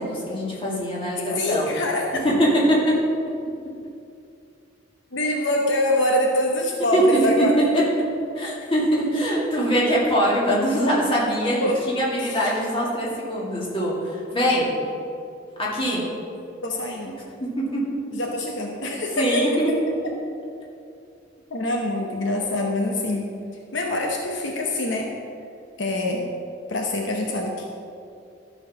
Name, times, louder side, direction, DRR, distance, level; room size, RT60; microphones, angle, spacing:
voice 1, 0.0-1.6 2.2-3.0 6.9-7.0 7.4-7.5 7.7-7.8 8.4-14.7 15.6-16.0 17.4-17.8 19.2-19.5, equal, 25° left, -5 dB, 2.1 m, -23 dB
voice 2, 1.4-2.2 5.1-7.6 11.6-11.8 12.2-12.4 16.6-17.1 18.1-19.5 21.5-23.3 23.7-25.1 25.8-26.3 26.7-27.7, left 1 dB, 70° left, 1 dB, 0.9 m, -24 dB
12.5 x 4.5 x 6.1 m, 2.6 s
head